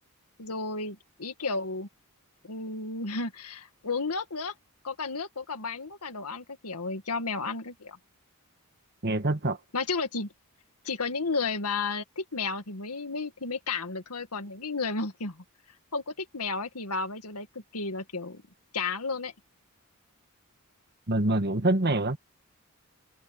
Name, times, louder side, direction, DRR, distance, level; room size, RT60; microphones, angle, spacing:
voice 1, 0.4-1.9 2.4-4.5 4.8-8.0 9.7-10.3 10.8-15.4 15.9-18.4 18.7-19.3, left 4 dB, 85° left, 2.1 m, -33 dB
voice 2, 9.0-9.6 21.1-22.2, right 2 dB, 45° right, 1.6 m, -25 dB
head